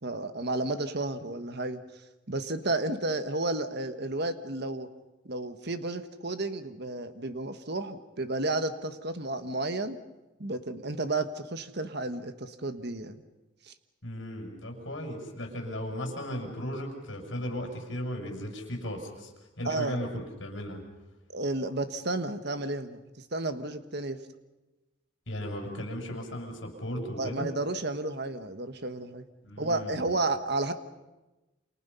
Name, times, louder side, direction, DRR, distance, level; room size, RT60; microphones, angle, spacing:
voice 1, 0.0-1.8 2.3-4.9 5.2-10.0 10.4-13.2 13.7-13.8 19.6-20.0 21.3-23.0 23.3-24.2 27.2-29.2 29.6-30.7, right 2 dB, 50° right, 9 dB, 1.4 m, -32 dB
voice 2, 14.0-19.3 19.6-20.8 25.3-27.5 29.4-30.1, equal, 65° left, 2 dB, 6.8 m, -36 dB
28.5 x 28.0 x 5.7 m, 1.1 s
head